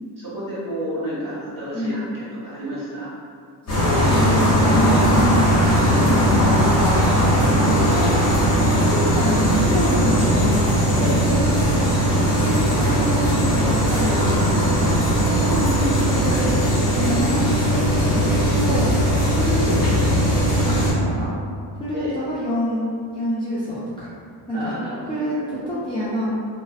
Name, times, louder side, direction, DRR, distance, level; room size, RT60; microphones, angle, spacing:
voice 1, 0.2-3.1 4.0-5.1 5.5-7.2 11.0-11.2 15.4-16.5 21.9-22.2 24.5-25.6, equal, 40° right, -9 dB, 1.3 m, -31 dB
voice 2, 3.6-5.4 5.9-6.2 7.5-11.9 12.2-15.5 16.1-16.5 16.9-18.9 19.3-20.3 20.7-21.3 21.8-24.1 24.5-24.8 25.1-25.4 25.7-26.4, equal, 10° left, -11 dB, 0.4 m, -27 dB
sound 1, 3.7-20.9, equal, 30° left, 1.0 m, -19 dB
2.6 x 2.1 x 2.2 m, 2.3 s
supercardioid pair, 85°, 49 cm